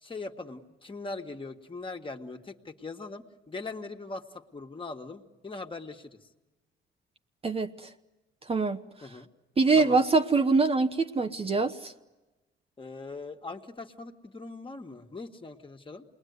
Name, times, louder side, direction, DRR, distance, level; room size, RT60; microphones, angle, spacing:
voice 1, 0.0-6.2 9.0-9.3 9.8-10.0 12.8-16.0, left 3 dB, 25° left, 4 dB, 1.9 m, -41 dB
voice 2, 7.4-7.9 8.5-8.8 9.6-11.9, right 4 dB, 30° right, 7 dB, 1.0 m, -24 dB
28.0 x 21.5 x 9.6 m, 1.1 s
cardioid pair, 90°, 20 cm